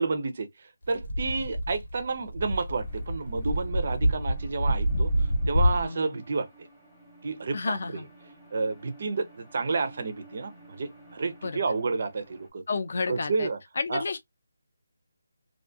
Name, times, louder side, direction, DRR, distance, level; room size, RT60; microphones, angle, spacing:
voice 1, 0.0-6.7 7.2-8.0 8.5-12.6 13.1-13.6 13.9-14.0, right 4 dB, 40° right, 0.4 m, -30 dB
sound 1, 0.9-5.8, equal, 80° left, 1.0 m, -27 dB
sound 2, 2.8-12.5, right 1 dB, ahead, 0.7 m, -53 dB
voice 2, 5.8-6.1 7.5-8.1 11.4-11.6 12.7-13.5 13.8-14.2, left 4 dB, 45° left, 0.5 m, -31 dB
2.5 x 2.2 x 2.5 m
figure-of-eight pair, 175°, 0 cm